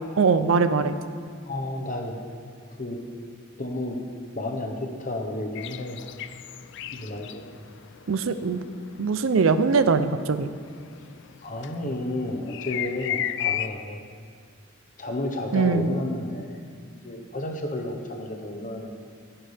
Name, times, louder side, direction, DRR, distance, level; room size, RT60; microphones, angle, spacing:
voice 1, 0.2-1.0 8.1-8.6 9.0-10.5 15.5-15.9, right 4 dB, 70° right, 11 dB, 0.5 m, -21 dB
voice 2, 1.5-2.2 2.8-3.0 3.6-4.0 4.3-6.1 6.9-7.4 11.4-14.0 15.0-16.6 17.0-18.9, left 1 dB, 40° left, 3 dB, 1.1 m, -31 dB
sound 1, 5.5-13.7, left 11 dB, 55° left, 0.4 m, -34 dB
14.5 x 10.5 x 3.4 m, 2.1 s
head